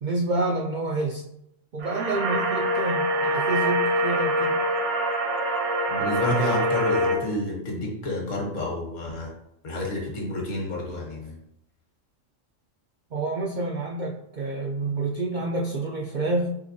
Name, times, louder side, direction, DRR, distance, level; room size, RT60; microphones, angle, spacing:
voice 1, 0.0-1.2 1.7-4.6 13.1-16.5, right 2 dB, 90° right, -1 dB, 0.4 m, -28 dB
sound 1, 1.8-7.1, right 1 dB, 70° right, 1.1 m, -24 dB
voice 2, 5.9-9.3 9.6-11.3, left 1 dB, 70° left, -1 dB, 1.3 m, -29 dB
5.1 x 3.1 x 2.6 m, 0.79 s
omnidirectional pair, 1.4 m